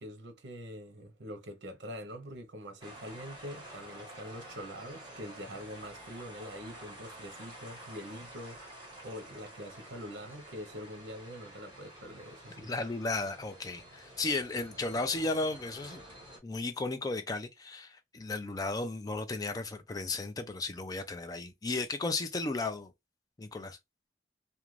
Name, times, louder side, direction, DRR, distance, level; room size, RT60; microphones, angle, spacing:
voice 1, 0.0-8.6 9.0-12.7, equal, 80° right, 0.7 m, -44 dB
sound 1, 2.8-16.4, right 1 dB, 25° right, 1.2 m, -50 dB
voice 2, 12.6-16.0 16.4-22.9 23.4-23.8, left 3 dB, 20° left, 0.3 m, -34 dB
2.4 x 2.2 x 3.0 m
head